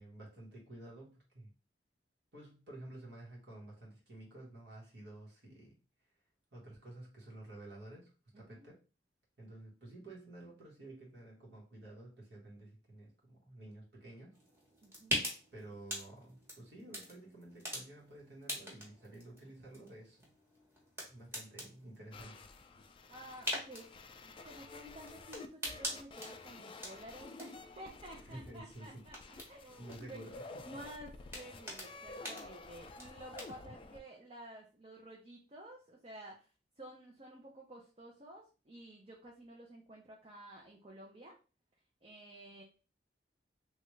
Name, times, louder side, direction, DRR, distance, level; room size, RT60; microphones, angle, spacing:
voice 1, 0.0-1.5 2.3-5.8 6.5-8.8 9.4-14.4 15.5-20.3 21.1-22.5 28.2-29.0 29.3-29.5 29.8-30.7, right 1 dB, 70° right, -3 dB, 1.4 m, -52 dB
voice 2, 8.3-8.7 14.8-15.3 23.1-29.1 29.5-36.5 36.8-41.4 42.0-42.6, right 1 dB, 35° right, -1 dB, 0.6 m, -52 dB
sound 1, 14.3-33.7, left 1 dB, 15° right, 1.2 m, -45 dB
sound 2, 22.1-34.0, left 3 dB, 30° left, 0.3 m, -51 dB
3.3 x 2.5 x 3.1 m, 0.34 s
head